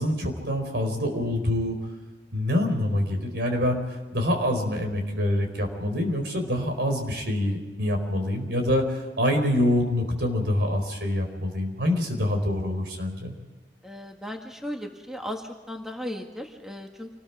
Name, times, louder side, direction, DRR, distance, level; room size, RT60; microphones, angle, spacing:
voice 1, 0.0-1.7 2.3-13.3, left 1 dB, 65° right, 4 dB, 4.7 m, -26 dB
voice 2, 13.8-17.1, equal, 5° right, 2 dB, 1.7 m, -36 dB
28.0 x 20.0 x 4.8 m, 1.3 s
head